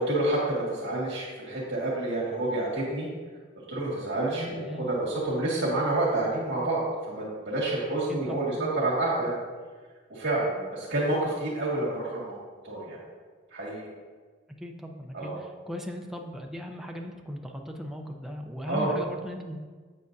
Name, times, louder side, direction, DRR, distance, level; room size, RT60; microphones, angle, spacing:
voice 1, 0.0-3.1 3.7-6.8 7.1-9.4 10.1-12.4 12.6-13.0 13.5-13.9 15.1-15.4 18.7-19.0, right 2 dB, 65° right, -7 dB, 1.9 m, -28 dB
voice 2, 4.3-4.9 8.3-8.7 10.6-10.7 14.6-19.6, equal, ahead, 1 dB, 0.5 m, -38 dB
8.1 x 7.5 x 2.7 m, 1.4 s
head